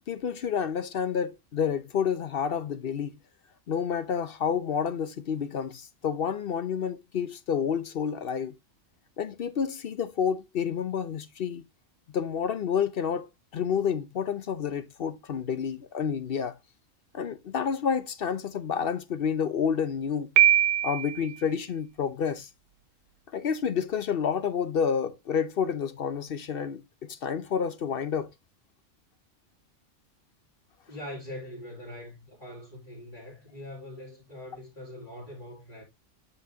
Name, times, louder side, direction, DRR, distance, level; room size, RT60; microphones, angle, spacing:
voice 1, 0.1-3.1 3.7-8.5 9.2-11.6 12.1-16.6 17.1-20.3 20.8-22.5 23.3-28.3, left 7 dB, 55° left, 0.8 m, -29 dB
Piano, 20.4-21.3, right 11 dB, 70° right, 0.8 m, -21 dB
voice 2, 30.9-35.8, left 1 dB, 40° left, 3.0 m, -42 dB
7.5 x 5.5 x 2.7 m
omnidirectional pair, 1.3 m